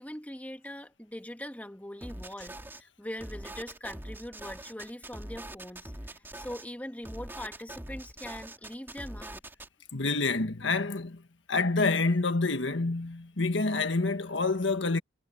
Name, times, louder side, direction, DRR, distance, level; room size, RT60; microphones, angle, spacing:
voice 1, 0.0-9.4, left 1 dB, 10° left, 2.3 m, -42 dB
sound 1, 2.0-2.8 3.2-6.6 7.0-9.7, right 1 dB, 10° right, 2.7 m, -43 dB
voice 2, 9.9-11.2 11.5-15.0, left 3 dB, 75° left, 1.6 m, -27 dB
head